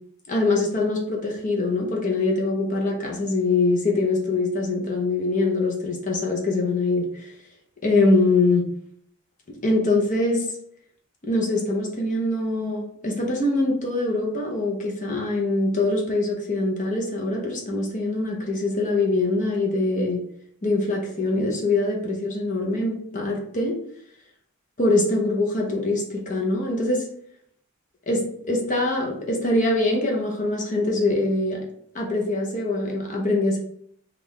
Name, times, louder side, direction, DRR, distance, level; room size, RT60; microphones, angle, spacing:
voice 1, 0.3-7.3 7.8-8.7 9.6-10.5 11.2-20.2 20.6-23.8 24.8-27.0 28.1-31.6 31.9-33.6, left 2 dB, 35° left, -1 dB, 0.7 m, -23 dB
3.7 x 2.4 x 3.1 m, 0.66 s
head